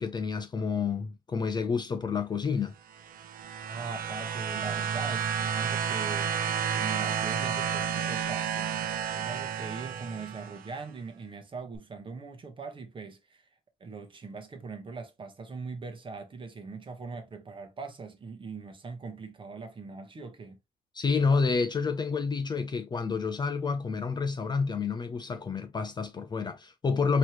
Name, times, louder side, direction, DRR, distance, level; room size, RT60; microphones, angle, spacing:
voice 1, 0.0-2.7 20.9-27.2, left 5 dB, 25° left, 0.5 m, -29 dB
sound 1, 2.9-10.7 11.7-11.8, right 7 dB, 55° right, 0.7 m, -31 dB
voice 2, 3.7-6.3 6.7-8.7 9.1-13.4 13.8-20.6, right 4 dB, 30° right, 1.1 m, -41 dB
4.4 x 3.0 x 3.0 m
cardioid pair, 110°, 17 cm